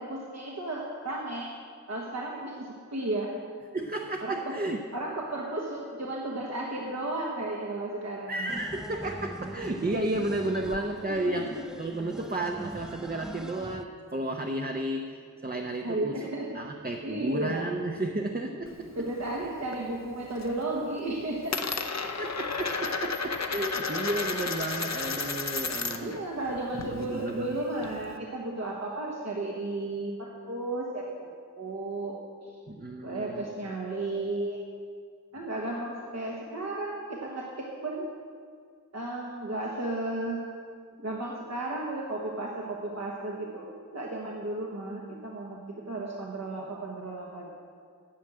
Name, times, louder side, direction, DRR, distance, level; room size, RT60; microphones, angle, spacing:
voice 1, 0.0-1.5 1.9-3.3 4.2-4.5 4.9-8.5 11.1-11.6 15.8-16.5 17.0-17.7 18.9-21.8 26.0-31.1 31.5-32.6 33.0-34.6 35.3-38.1 38.9-40.5 41.0-47.5, right 2 dB, 55° right, -2 dB, 1.3 m, -34 dB
voice 2, 3.7-4.8 8.3-11.5 11.8-15.1 15.4-16.1 16.5-18.9 22.0-26.2 26.7-27.6 32.7-33.5, right 1 dB, 30° right, 2 dB, 0.8 m, -32 dB
sound 1, 8.5-13.8, equal, ahead, 0.3 m, -42 dB
Coin (dropping), 18.7-19.8 20.1-20.6 20.9-26.2 26.5-28.2, left 4 dB, 55° left, 0.7 m, -33 dB
10.0 x 6.3 x 8.8 m, 2.1 s
wide cardioid pair, 75°, 32 cm